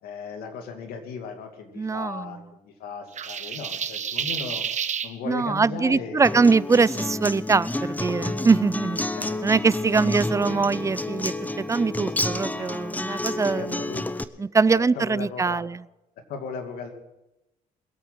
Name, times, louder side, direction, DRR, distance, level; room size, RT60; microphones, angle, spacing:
voice 1, 0.0-4.6 5.0-6.4 9.1-9.4 12.0-12.1 13.6-14.0 14.7-15.7 16.3-16.9, left 5 dB, 85° left, 5 dB, 2.5 m, -36 dB
voice 2, 1.8-2.4 5.2-9.0 9.4-13.8 14.4-15.8, right 4 dB, 20° right, 20 dB, 0.4 m, -22 dB
sound 1, 3.2-5.1, right 7 dB, 50° right, 1.1 m, -30 dB
Acoustic guitar, 6.2-14.2, left 2 dB, 10° left, 0.8 m, -29 dB
22.0 x 8.3 x 5.7 m, 0.92 s
supercardioid pair, 75°, 16 cm